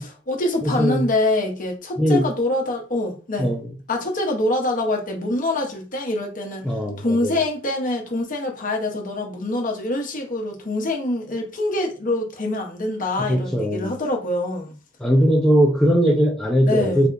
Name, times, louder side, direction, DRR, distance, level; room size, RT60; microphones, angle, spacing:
voice 1, 0.0-3.5 3.9-6.7 7.0-14.8 16.7-17.1, left 2 dB, 40° left, 0.8 m, -25 dB
voice 2, 0.6-1.1 2.0-2.3 3.4-3.7 6.6-7.3 13.2-13.9 15.0-17.1, equal, 5° left, 0.4 m, -19 dB
3.4 x 2.7 x 2.5 m
head